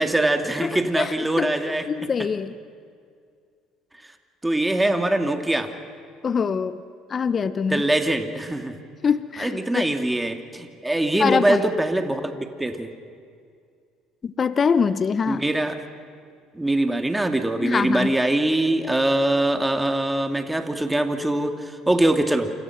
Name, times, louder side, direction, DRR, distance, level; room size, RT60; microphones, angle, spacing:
voice 1, 0.0-1.9 4.4-5.7 7.7-8.8 9.4-12.9 15.3-15.8 16.5-22.5, right 1 dB, 10° right, 6 dB, 2.4 m, -23 dB
voice 2, 0.6-1.5 1.9-2.5 6.2-6.8 7.1-7.8 9.0-9.9 11.1-11.6 14.2-15.4 17.6-18.1, left 6 dB, 40° left, 14 dB, 0.9 m, -24 dB
28.5 x 26.5 x 6.1 m, 2.2 s
hypercardioid pair, 65°, 0 cm